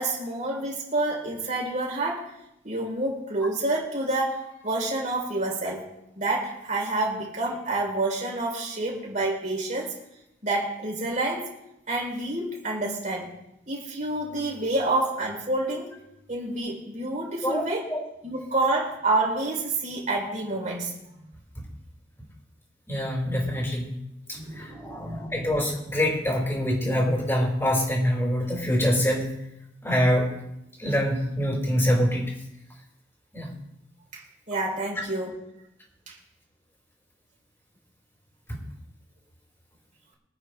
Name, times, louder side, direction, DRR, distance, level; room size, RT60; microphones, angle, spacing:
voice 1, 0.0-2.3 2.6-5.9 6.2-9.9 10.4-11.5 11.9-13.3 13.7-15.9 16.3-17.8 18.2-20.9 24.3-25.3 34.1-34.2 34.5-35.3 36.1-36.2, right 2 dB, 45° right, -2 dB, 3.9 m, -28 dB
voice 2, 17.4-18.0 22.9-23.9 24.3-29.3 29.8-30.3 30.8-32.3 33.3-33.5 34.5-34.6, equal, 15° left, -3 dB, 4.9 m, -25 dB
24.5 x 9.3 x 3.5 m, 0.82 s
head